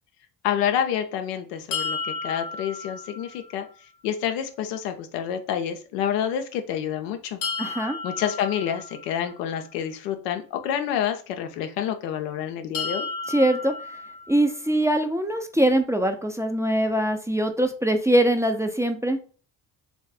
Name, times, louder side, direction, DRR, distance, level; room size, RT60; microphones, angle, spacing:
voice 1, 0.4-3.7 4.0-7.4 8.0-13.1, left 9 dB, 85° left, 7 dB, 0.6 m, -28 dB
sound 1, 1.7-3.7 7.4-9.5 12.7-14.8, left 4 dB, 55° left, 0.9 m, -33 dB
voice 2, 7.6-8.0 13.3-13.8 14.3-19.2, right 1 dB, 5° right, 5 dB, 0.4 m, -22 dB
3.1 x 2.8 x 3.4 m, 0.38 s
hypercardioid pair, 50°, 47 cm